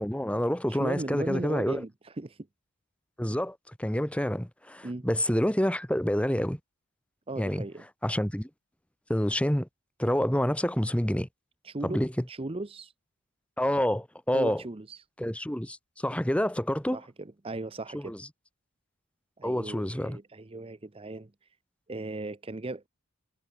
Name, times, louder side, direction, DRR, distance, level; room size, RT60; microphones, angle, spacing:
voice 1, 0.0-1.8 3.2-6.6 7.4-7.6 8.0-8.5 9.1-9.7 10.0-11.3 11.8-12.2 13.6-14.6 15.2-17.0 18.1-18.2 19.4-20.2, equal, 5° left, 1.3 m, -28 dB
voice 2, 0.7-2.5 4.8-5.0 7.3-7.9 11.6-12.0 12.3-12.9 14.3-15.0 16.9-18.2 19.4-21.3 21.9-22.9, right 2 dB, 25° right, 0.6 m, -37 dB
head